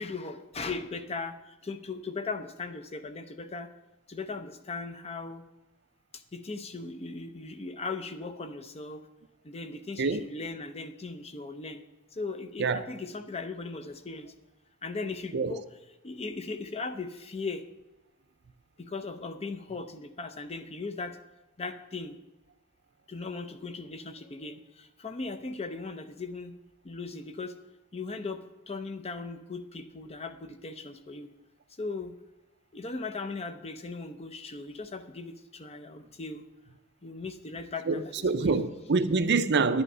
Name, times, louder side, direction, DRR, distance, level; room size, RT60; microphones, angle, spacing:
voice 1, 0.0-3.7 4.1-5.4 6.1-9.0 9.4-11.8 12.1-14.3 14.8-15.6 16.0-17.6 18.8-21.2 21.6-22.2 23.1-26.6 26.8-27.6 27.9-31.3 31.8-32.2 32.7-36.4 37.0-38.6, left 3 dB, 30° left, 0.7 m, -38 dB
voice 2, 37.9-39.8, right 4 dB, 55° right, 0.6 m, -26 dB
10.0 x 10.0 x 5.5 m
head